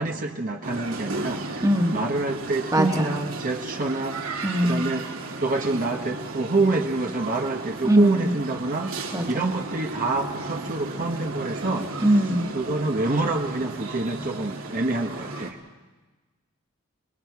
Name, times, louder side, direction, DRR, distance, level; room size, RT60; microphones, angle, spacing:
voice 1, 0.0-1.5 1.9-5.1 5.4-8.9 9.3-11.9 12.5-15.6, right 2 dB, 40° right, 2 dB, 1.2 m, -27 dB
sound 1, 0.6-15.5, right 3 dB, 70° right, 2.6 m, -35 dB
voice 2, 1.6-2.0 2.7-3.2 4.4-4.9 7.8-8.3 9.1-9.5 12.0-12.5, equal, 15° right, 3 dB, 1.6 m, -22 dB
29.5 x 21.0 x 4.7 m, 1.2 s
head